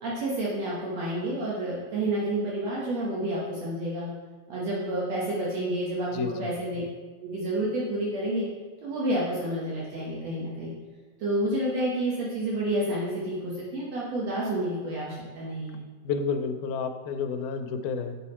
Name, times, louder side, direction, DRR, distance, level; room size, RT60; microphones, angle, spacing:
voice 1, 0.0-4.1 4.5-6.8 7.2-8.5 8.8-10.7 11.2-15.8, right 1 dB, 65° right, -5 dB, 2.1 m, -29 dB
voice 2, 6.1-6.5 16.0-18.2, left 5 dB, 85° left, 7 dB, 2.1 m, -30 dB
6.9 x 5.6 x 4.2 m, 1.3 s
omnidirectional pair, 3.5 m